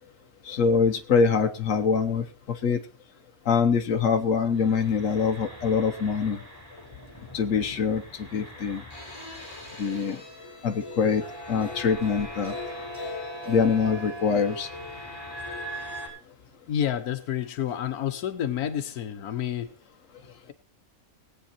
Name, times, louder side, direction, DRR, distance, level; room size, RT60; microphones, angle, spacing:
voice 1, 0.5-2.8 3.5-6.4 7.3-8.0 8.3-8.8 9.8-10.2 10.6-11.2 11.5-12.5 13.5-14.7, left 5 dB, 60° left, 6 dB, 1.4 m, -24 dB
sound 1, 4.5-16.1, left 1 dB, 15° left, 4.9 m, -40 dB
voice 2, 16.7-19.7, left 10 dB, 90° left, 9 dB, 1.4 m, -29 dB
18.5 x 8.5 x 4.3 m, 0.37 s
omnidirectional pair, 1.5 m